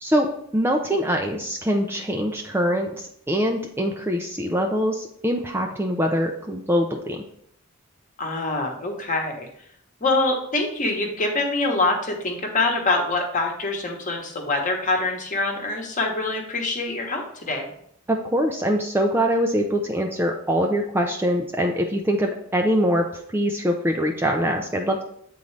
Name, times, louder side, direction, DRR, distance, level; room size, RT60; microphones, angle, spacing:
voice 1, 0.0-7.2 18.1-23.1 23.3-25.0, equal, 10° right, 1 dB, 0.5 m, -23 dB
voice 2, 8.2-9.5 10.0-17.7, left 2 dB, 35° left, 2 dB, 1.1 m, -25 dB
8.4 x 3.9 x 3.3 m, 0.70 s
head